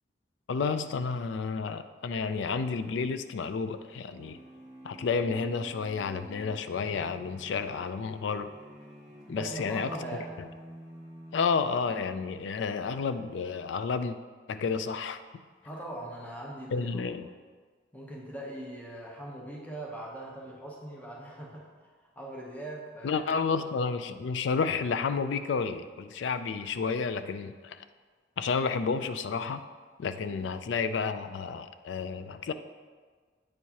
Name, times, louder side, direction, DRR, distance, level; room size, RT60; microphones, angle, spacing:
voice 1, 0.5-4.4 4.8-8.5 9.3-9.9 11.3-14.2 14.5-15.2 16.7-17.3 23.0-27.8 28.4-29.6 30.0-32.5, left 5 dB, 75° left, 10 dB, 0.3 m, -31 dB
sound 1, 4.1-12.4, equal, 20° right, 1.4 m, -49 dB
voice 2, 9.3-10.3 15.6-17.0 17.9-23.2 30.1-30.4, right 1 dB, 10° left, -3 dB, 0.8 m, -41 dB
8.9 x 4.6 x 2.8 m, 1.5 s
head